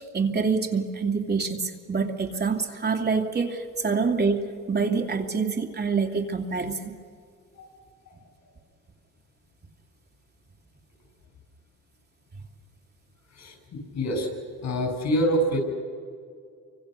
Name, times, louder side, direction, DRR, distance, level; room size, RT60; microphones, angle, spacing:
voice 1, 0.0-6.9, right 5 dB, 35° right, 3 dB, 2.6 m, -26 dB
voice 2, 13.3-14.3 14.6-15.6, equal, 65° left, 4 dB, 7.7 m, -26 dB
29.0 x 25.0 x 6.7 m, 2.2 s
cardioid pair, 90°, 30 cm